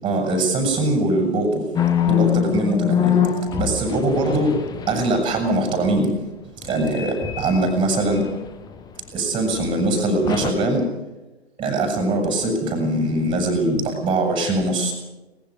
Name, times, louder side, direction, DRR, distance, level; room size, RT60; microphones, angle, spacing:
voice 1, 0.0-1.6 2.0-3.1 3.5-4.5 4.9-6.1 6.6-8.3 9.1-10.8 11.6-14.9, right 2 dB, 15° right, 4 dB, 7.9 m, -21 dB
sound 1, 1.8-5.3 6.6-8.9 9.5-9.7 10.3-10.5, left 9 dB, 10° left, 1.3 m, -24 dB
24.0 x 20.5 x 5.3 m, 1.1 s
figure-of-eight pair, 125°, 32 cm